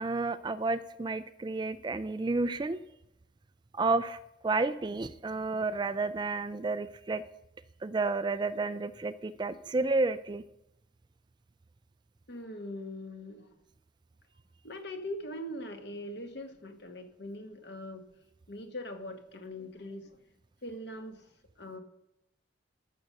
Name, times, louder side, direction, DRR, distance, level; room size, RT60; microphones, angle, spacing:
voice 1, 0.0-2.8 3.7-7.2 7.8-10.4, right 3 dB, 20° right, 13 dB, 0.3 m, -31 dB
voice 2, 12.3-13.5 14.6-18.0 18.5-20.2 20.6-21.3 21.6-21.8, left 1 dB, 55° left, 7 dB, 1.3 m, -41 dB
13.5 x 6.6 x 6.4 m, 0.84 s
head